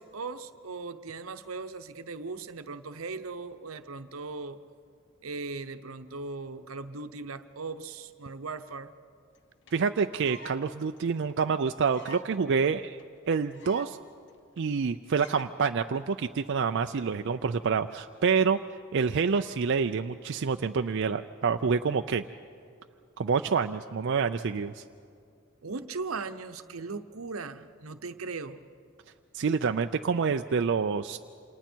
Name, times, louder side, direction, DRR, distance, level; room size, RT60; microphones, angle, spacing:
voice 1, 0.0-4.6 5.2-8.9 25.6-28.6, right 4 dB, 80° right, 10 dB, 0.9 m, -38 dB
sound 1, 9.3-9.4 9.7-9.8 10.0-10.6 11.0-11.1 11.3-11.4 11.8-12.3 12.6-12.7 13.0-13.1 13.3-14.0 14.3-14.4 14.6-14.9 15.2-15.5 16.1-16.4, right 1 dB, 60° left, 1.0 m, -47 dB
voice 2, 9.7-13.0 13.3-14.0 14.6-18.6 18.9-22.2 23.2-24.8 29.3-31.2, right 5 dB, 55° right, 7 dB, 0.4 m, -27 dB
28.5 x 27.0 x 4.5 m, 2.3 s
head